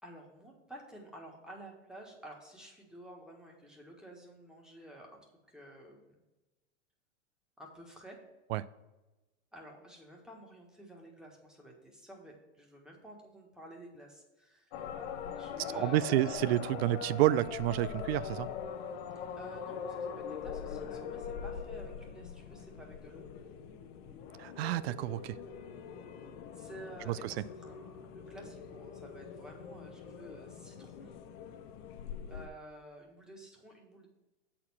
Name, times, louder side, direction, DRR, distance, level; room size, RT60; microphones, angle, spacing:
voice 1, 0.0-6.2 7.6-8.2 9.5-14.7 15.3-16.2 19.4-23.2 26.5-31.1 32.3-34.1, right 1 dB, ahead, 0 dB, 1.5 m, -51 dB
sound 1, 14.7-32.5, left 7 dB, 60° left, 0.8 m, -42 dB
voice 2, 15.7-18.5 24.4-25.4 27.1-27.3, right 15 dB, 60° right, 16 dB, 0.5 m, -29 dB
7.8 x 4.3 x 5.7 m, 1.1 s
hypercardioid pair, 110°, 35 cm